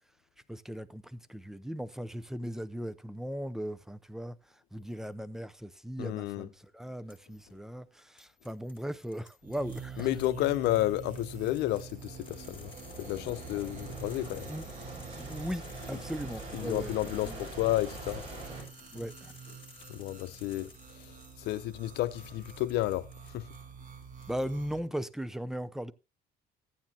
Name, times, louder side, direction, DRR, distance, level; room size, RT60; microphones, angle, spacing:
voice 1, 0.5-4.4 4.7-10.1 14.5-14.6 15.1-17.4 18.9-19.4 20.6-20.7 24.3-25.9, equal, 5° right, 0.6 m, -38 dB
voice 2, 6.0-6.5 10.0-12.7 13.0-14.5 16.5-18.3 19.9-23.1 23.3-23.5, left 16 dB, 85° left, 0.7 m, -31 dB
sound 1, 7.1-7.5 8.2-23.6 24.0-24.8, left 4 dB, 30° left, 7.3 m, -56 dB
sound 2, 9.4-24.8, right 7 dB, 50° right, 2.0 m, -47 dB
sound 3, 11.8-18.6, right 2 dB, 35° right, 7.1 m, -44 dB
14.5 x 9.4 x 2.8 m
cardioid pair, 110°, 17 cm